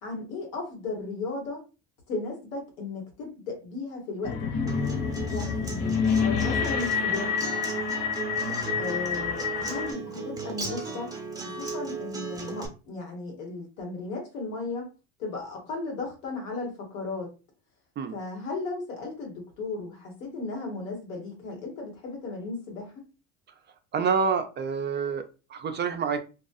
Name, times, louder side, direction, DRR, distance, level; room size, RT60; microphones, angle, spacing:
voice 1, 0.0-1.6 2.1-4.9 5.3-6.0 6.2-7.5 8.8-11.1 11.4-14.9 15.2-17.3 18.1-23.1, left 3 dB, 90° left, 1.2 m, -35 dB
sound 1, 4.2-9.9, left 6 dB, 70° left, 0.8 m, -28 dB
Acoustic guitar, 4.7-12.7, right 4 dB, 10° right, 0.7 m, -36 dB
voice 2, 23.9-25.2 25.5-26.2, right 6 dB, 30° right, 0.4 m, -27 dB
2.4 x 2.3 x 2.5 m
supercardioid pair, 85°, 39 cm